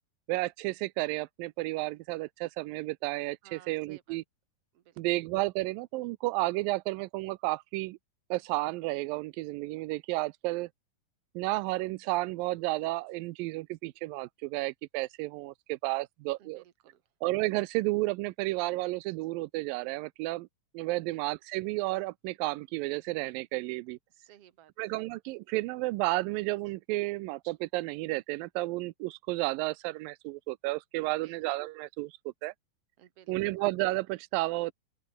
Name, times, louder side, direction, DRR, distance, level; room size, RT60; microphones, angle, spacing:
voice 1, 0.3-4.2 5.0-8.0 8.3-10.7 11.4-16.6 17.2-20.5 20.7-24.0 24.8-32.5 33.3-34.7, right 21 dB, 90° right, 2.3 m, -32 dB
voice 2, 3.4-4.2 4.7-5.0 16.4-17.0 21.1-21.2 24.1-24.7 31.0-31.4 33.0-33.6, right 11 dB, 55° right, 2.1 m, -57 dB
open air
omnidirectional pair, 4.0 m